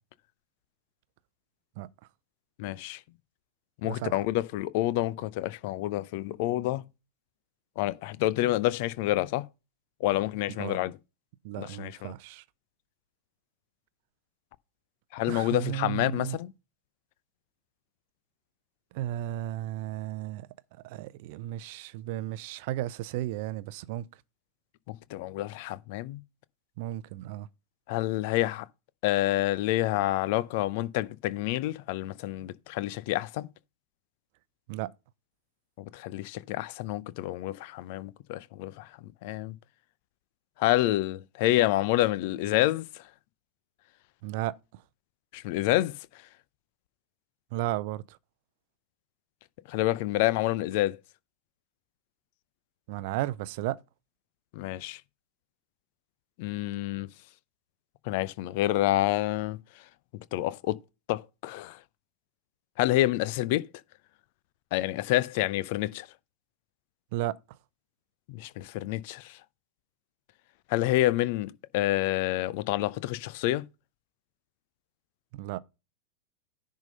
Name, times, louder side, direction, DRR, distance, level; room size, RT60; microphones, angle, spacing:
voice 1, 2.6-3.0 3.8-6.8 7.8-9.5 10.0-10.9 11.6-12.1 15.1-16.5 24.9-26.2 27.9-28.7 29.0-33.5 35.9-39.5 40.6-43.0 45.3-46.0 49.7-51.0 54.5-55.0 56.4-57.1 58.1-59.6 60.3-60.8 61.1-61.8 62.8-63.7 64.7-66.1 68.3-69.4 70.7-73.6, left 16 dB, 50° left, 0.5 m, -28 dB
voice 2, 3.8-4.2 10.6-10.8 11.4-12.4 15.3-16.4 18.9-24.2 26.8-27.5 34.7-34.9 44.2-44.8 47.5-48.2 52.9-53.8 67.1-67.4 75.3-75.6, right 14 dB, 50° right, 0.6 m, -34 dB
10.5 x 3.7 x 5.4 m
figure-of-eight pair, 90°, 0 cm